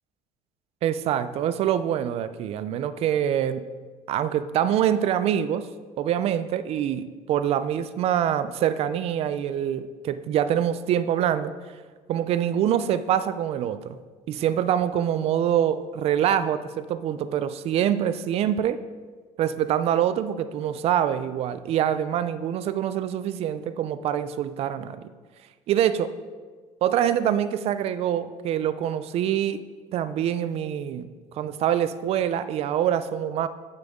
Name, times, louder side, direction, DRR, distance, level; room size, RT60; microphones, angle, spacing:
voice 1, 0.8-3.6 4.1-5.7 6.0-11.5 12.1-14.0 14.3-18.8 19.4-25.1 25.7-26.1 26.8-29.6 29.9-31.1 31.3-33.5, right 10 dB, 50° right, 13 dB, 0.4 m, -25 dB
8.7 x 7.8 x 3.6 m, 1.5 s
cardioid pair, 150°, 14 cm